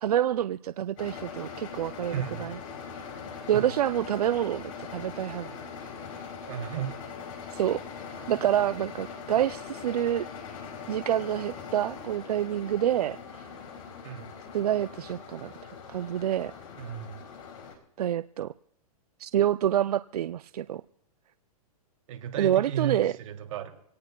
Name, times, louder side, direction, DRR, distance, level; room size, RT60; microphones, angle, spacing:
voice 1, 0.0-2.6 3.5-4.6 4.9-5.6 7.5-7.8 8.3-10.3 10.9-13.5 14.5-16.5 18.0-18.5 19.2-20.8 22.4-23.1, right 11 dB, 85° right, 15 dB, 0.4 m, -27 dB
sound 1, 1.0-17.8, left 6 dB, 60° left, 4.5 m, -41 dB
voice 2, 2.1-2.5 3.5-3.7 6.5-7.0 8.2-8.3 14.0-14.3 16.8-17.2 22.1-23.7, right 10 dB, 55° right, 3 dB, 2.6 m, -34 dB
26.5 x 18.0 x 2.2 m, 0.74 s
hypercardioid pair, 135°, 19 cm